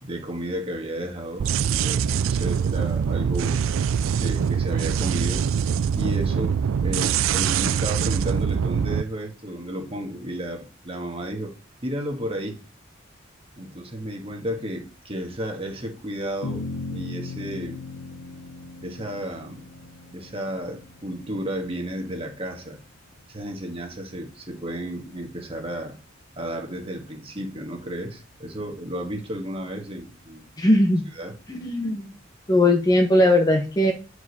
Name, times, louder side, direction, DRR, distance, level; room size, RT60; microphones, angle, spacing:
voice 1, 0.0-3.6 4.2-5.5 5.9-6.5 6.8-11.5 11.8-12.6 13.6-17.8 18.8-19.7 20.1-22.8 23.3-26.0 26.4-30.5 31.1-31.3, right 1 dB, 30° right, 3 dB, 1.6 m, -33 dB
sound 1, 1.4-9.0, right 7 dB, 80° right, 0.4 m, -23 dB
sound 2, 16.4-23.0, left 3 dB, 80° left, 0.7 m, -38 dB
voice 2, 30.6-31.1 31.5-32.1 32.5-33.9, left 1 dB, 20° left, 5 dB, 0.8 m, -19 dB
8.9 x 4.9 x 4.1 m, 0.34 s
head